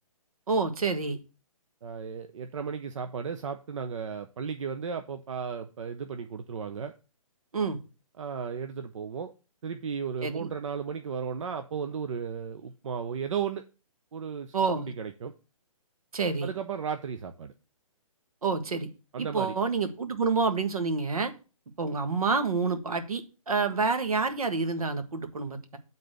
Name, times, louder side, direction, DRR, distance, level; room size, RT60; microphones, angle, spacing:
voice 1, 0.5-1.2 7.5-7.8 10.2-10.5 14.5-14.9 16.1-16.5 18.4-18.9 19.2-21.3 21.8-25.8, right 4 dB, 75° right, 8 dB, 1.6 m, -28 dB
voice 2, 1.8-6.9 8.2-9.3 9.6-13.6 14.1-15.3 16.4-17.5 19.1-19.6, right 6 dB, 60° right, 8 dB, 0.7 m, -35 dB
8.6 x 4.1 x 6.4 m, 0.34 s
hypercardioid pair, 145°, 18 cm